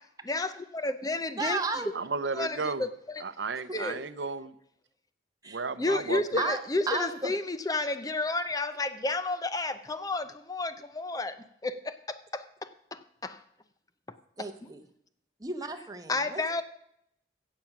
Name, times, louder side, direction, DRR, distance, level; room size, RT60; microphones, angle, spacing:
voice 1, 0.2-1.6 2.3-3.2 3.7-4.0 5.8-11.4 11.6-13.4 14.4-14.5 16.1-16.6, left 2 dB, 20° left, 0.5 m, -31 dB
voice 2, 1.3-1.9 3.7-3.8 5.4-5.6 6.3-6.6 6.9-7.3 14.4-14.8 15.4-16.4, right 3 dB, 20° right, 1.1 m, -33 dB
voice 3, 1.9-2.8 3.2-4.5 5.5-6.2, right 4 dB, 70° right, 0.7 m, -33 dB
16.0 x 7.6 x 6.0 m
head